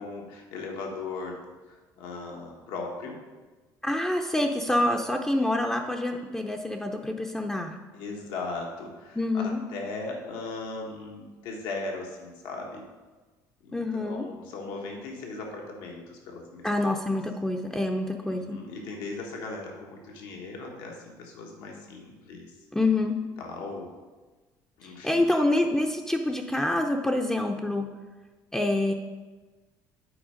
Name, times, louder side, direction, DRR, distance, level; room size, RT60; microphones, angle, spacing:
voice 1, 0.0-1.4 2.0-3.2 4.7-4.8 7.9-9.4 9.7-12.8 13.6-16.9 18.2-22.5 23.4-23.9 24.8-25.3, left 3 dB, 90° left, 0 dB, 1.3 m, -38 dB
voice 2, 3.8-7.8 9.2-9.6 13.7-14.3 16.6-18.6 22.7-23.2 25.0-27.9 28.5-28.9, left 1 dB, 10° left, 2 dB, 0.5 m, -26 dB
8.7 x 4.4 x 5.0 m, 1.3 s
cardioid pair, 110°, 7 cm